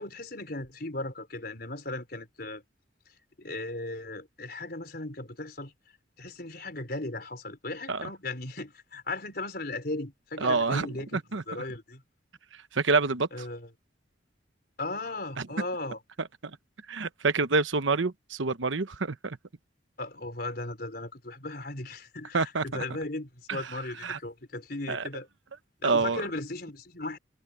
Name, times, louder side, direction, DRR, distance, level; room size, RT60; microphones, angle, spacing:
voice 1, 0.0-2.6 3.4-5.7 6.2-12.0 13.3-13.7 14.8-16.0 20.0-25.3 25.8-27.2, left 2 dB, 55° left, 4.4 m, -37 dB
voice 2, 10.4-11.4 12.7-13.3 16.9-19.4 22.3-22.8 23.5-23.7 24.0-24.2 24.9-25.0 25.8-26.2, right 4 dB, 90° right, 1.0 m, -27 dB
head